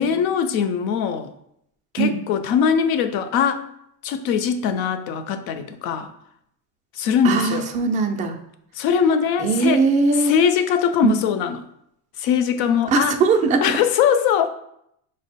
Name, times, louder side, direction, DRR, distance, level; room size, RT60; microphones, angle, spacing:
voice 1, 0.0-1.3 1.9-3.6 4.0-6.1 7.0-7.7 8.8-9.8 10.2-11.6 12.2-13.2 13.6-14.5, left 7 dB, 60° left, 0.6 m, -21 dB
voice 2, 7.2-8.4 9.4-10.3 11.0-11.2 12.9-13.8, right 4 dB, 20° right, 0.3 m, -20 dB
5.9 x 2.1 x 4.1 m
cardioid pair, 130°, 41 cm